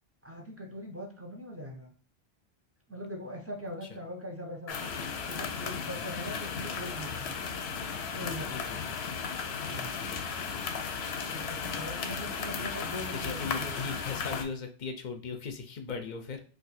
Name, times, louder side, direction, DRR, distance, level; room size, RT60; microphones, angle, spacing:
voice 1, 0.2-1.9 2.9-4.9 5.2-7.3 8.1-8.8 9.7-9.9 11.3-14.0, equal, 20° right, 0 dB, 0.5 m, -41 dB
sound 1, 4.7-14.4, left 6 dB, 90° left, 0.8 m, -35 dB
voice 2, 8.5-9.0 10.0-10.3 13.1-16.4, left 5 dB, 55° left, 5 dB, 0.6 m, -39 dB
2.6 x 2.4 x 4.1 m, 0.39 s
omnidirectional pair, 1.0 m